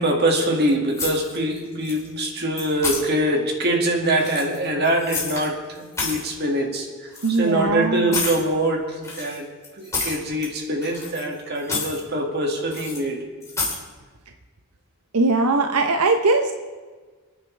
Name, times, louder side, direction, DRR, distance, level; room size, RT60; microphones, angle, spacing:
voice 1, 0.0-9.5 9.8-13.2, right 1 dB, 45° right, 2 dB, 2.1 m, -24 dB
sound 1, 0.9-1.6 1.8-2.3 2.6-3.0 4.1-5.5 5.8-6.3 7.1-7.4 8.1-8.4 9.0-10.5 10.8-11.3 11.6-12.0 12.7-13.0 13.4-13.8, left 3 dB, 15° left, 2.9 m, -29 dB
voice 2, 7.2-8.2 15.1-16.5, right 3 dB, 85° right, 5 dB, 0.9 m, -20 dB
28.5 x 9.6 x 3.4 m, 1.4 s
head